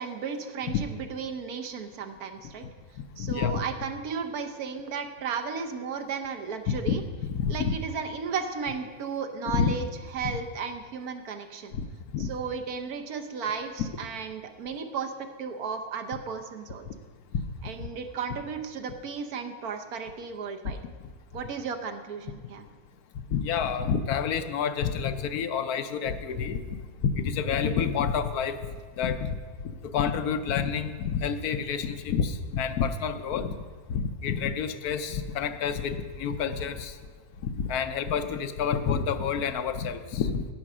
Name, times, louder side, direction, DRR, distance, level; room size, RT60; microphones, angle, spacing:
voice 1, 0.0-2.6 3.2-7.0 7.5-9.9 10.1-11.8 12.2-15.1 15.4-16.9 17.6-20.8 21.3-22.6, right 5 dB, 75° right, 6 dB, 1.3 m, -34 dB
voice 2, 3.2-3.5 6.7-7.0 7.3-7.7 9.5-9.7 10.2-10.3 11.7-11.9 12.1-12.3 17.3-17.5 23.3-28.6 29.0-29.4 29.6-33.5 33.9-37.0 37.4-40.5, left 7 dB, 75° left, 10 dB, 1.2 m, -28 dB
10.5 x 9.2 x 6.1 m, 1.5 s
omnidirectional pair, 1.6 m